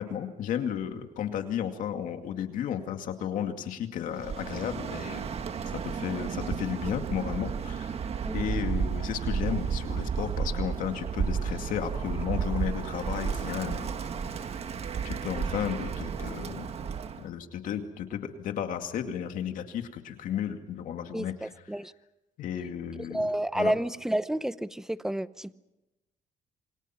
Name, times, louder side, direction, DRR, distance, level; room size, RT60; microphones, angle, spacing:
voice 1, 0.0-5.3 5.8-8.0 8.3-13.9 15.0-16.8 17.2-21.5 22.4-23.2 23.6-23.7, left 9 dB, 80° left, 6 dB, 2.3 m, -33 dB
Bird, 4.1-17.2, right 6 dB, 50° right, 1.6 m, -32 dB
Piano, 12.7-17.6, right 10 dB, 85° right, 3.2 m, -53 dB
voice 2, 21.1-21.9 23.1-25.5, right 1 dB, 5° right, 15 dB, 0.8 m, -30 dB
28.0 x 23.5 x 6.0 m, 0.98 s
cardioid pair, 110°, 13 cm